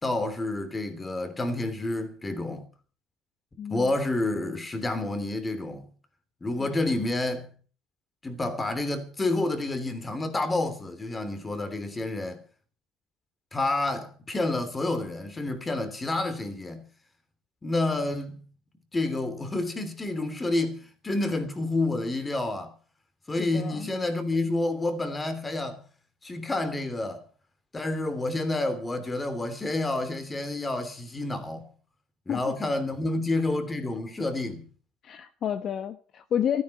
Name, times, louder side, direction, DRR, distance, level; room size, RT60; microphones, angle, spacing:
voice 1, 0.0-2.7 3.7-5.9 6.4-7.5 8.2-12.4 13.5-16.8 17.6-18.5 18.9-22.7 23.3-25.8 26.2-27.2 27.7-31.7 32.3-34.7, left 2 dB, 15° left, 3.1 m, -29 dB
voice 2, 3.6-3.9 6.6-6.7 23.4-23.9 32.3-32.5 35.0-36.6, left 9 dB, 45° left, 1.1 m, -30 dB
15.5 x 14.0 x 5.6 m
cardioid pair, 120°, 0 cm